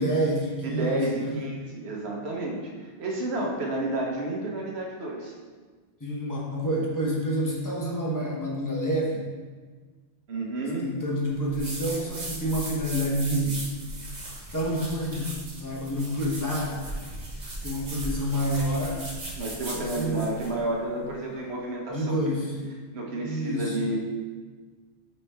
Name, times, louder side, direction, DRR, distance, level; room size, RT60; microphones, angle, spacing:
voice 1, 0.0-1.5 6.0-9.3 10.8-13.6 14.5-16.8 17.6-19.0 19.7-20.4 21.0-21.1 21.9-22.6 23.2-23.8, equal, 20° left, -3 dB, 0.9 m, -28 dB
voice 2, 0.6-5.3 10.3-10.9 19.4-22.4 22.9-24.0, right 2 dB, 70° right, -2 dB, 1.3 m, -31 dB
sound 1, 11.5-20.6, right 1 dB, 40° right, 1.1 m, -37 dB
8.8 x 3.3 x 3.4 m, 1.5 s
omnidirectional pair, 1.1 m